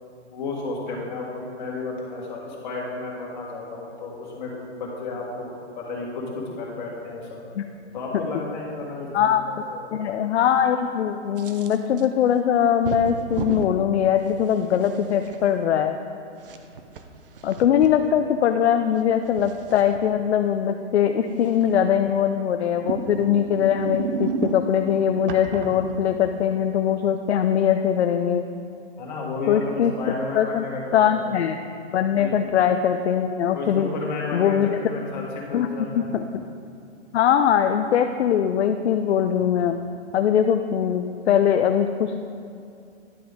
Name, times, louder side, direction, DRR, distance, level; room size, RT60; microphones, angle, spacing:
voice 1, 0.3-7.4 7.9-10.2 29.0-31.1 32.2-32.3 33.5-36.1, left 3 dB, 40° left, -3 dB, 1.8 m, -32 dB
voice 2, 9.9-16.0 17.4-28.4 29.5-29.9 30.3-30.6 30.9-31.6 31.9-33.9 34.3-34.7 35.5-35.7 36.0-36.4 37.1-39.7 40.1-42.2, left 9 dB, 65° left, 7 dB, 0.5 m, -21 dB
sound 1, 11.4-12.0 12.8-13.7 14.4-15.4 16.4-17.9 19.0-20.0 21.4-21.9 22.7-24.8 25.3-26.4, right 5 dB, 50° right, 0.6 m, -32 dB
10.0 x 6.0 x 3.6 m, 2.5 s
hypercardioid pair, 170°, 35 cm